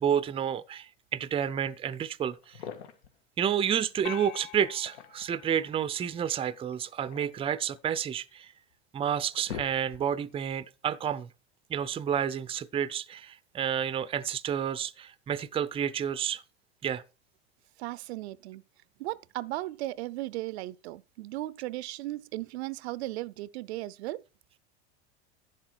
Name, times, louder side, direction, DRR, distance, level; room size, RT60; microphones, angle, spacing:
voice 1, 0.0-2.6 3.4-8.5 8.9-11.3 11.7-16.4 16.8-17.0, right 9 dB, 15° right, 0.5 m, -30 dB
sound 1, 2.4-3.2 4.6-5.5 6.7-8.1 8.7-8.8 9.1-10.3, left 8 dB, 80° left, 1.9 m, -44 dB
sound 2, 4.0-6.5, left 15 dB, 50° left, 0.6 m, -46 dB
voice 2, 17.8-18.6 19.0-24.2, right 17 dB, 75° right, 0.6 m, -36 dB
10.5 x 7.5 x 4.5 m
supercardioid pair, 110°, 33 cm